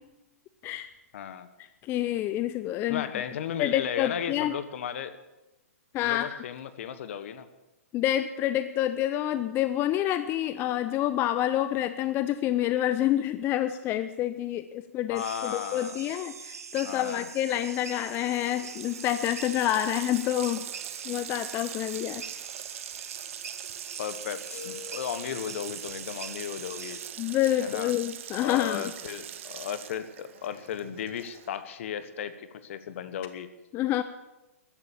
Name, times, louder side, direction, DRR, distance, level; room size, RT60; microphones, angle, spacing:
voice 1, 1.1-1.5 2.9-5.2 6.0-7.5 15.1-16.0 16.8-17.3 24.0-27.0 27.6-27.9 28.4-33.5, left 9 dB, 55° left, 12 dB, 1.3 m, -35 dB
voice 2, 1.8-3.0 3.6-4.5 5.9-6.4 7.9-20.7 21.0-22.2 27.2-28.8 33.7-34.0, left 12 dB, 25° left, 12 dB, 0.6 m, -28 dB
sound 1, 15.2-27.1, right 6 dB, 80° right, 1.0 m, -43 dB
Water tap faucet, 17.6-17.7 17.9-31.7, right 11 dB, 55° right, 1.1 m, -42 dB
sound 2, 24.5-25.9, left 7 dB, 80° left, 4.1 m, -45 dB
14.5 x 11.0 x 7.2 m, 1.0 s
hypercardioid pair, 125°, 8 cm